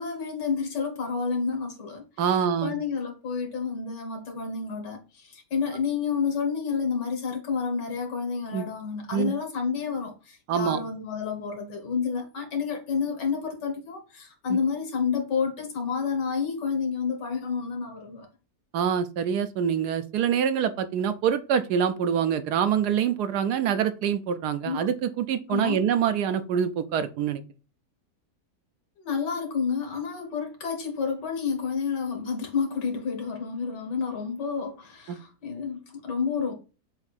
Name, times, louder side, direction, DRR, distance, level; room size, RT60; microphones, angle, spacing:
voice 1, 0.0-2.0 2.6-18.3 24.6-24.9 25.5-25.9 29.0-36.5, left 5 dB, 90° left, 2.2 m, -30 dB
voice 2, 2.2-2.7 8.5-8.7 9.1-9.3 10.5-10.8 14.5-14.6 18.7-27.4 35.1-35.2, right 8 dB, 75° right, 1.2 m, -25 dB
7.1 x 2.6 x 5.8 m
omnidirectional pair, 1.8 m